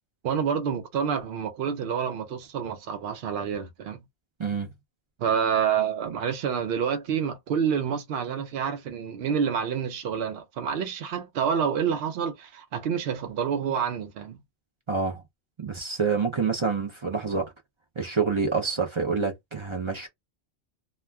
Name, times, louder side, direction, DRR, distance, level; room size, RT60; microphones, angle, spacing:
voice 1, 0.2-4.0 5.2-14.4, right 7 dB, 65° right, 0.7 m, -28 dB
voice 2, 14.9-15.2 15.6-17.5 18.0-20.1, right 5 dB, 45° right, 0.4 m, -27 dB
2.3 x 2.2 x 3.3 m
omnidirectional pair, 1.2 m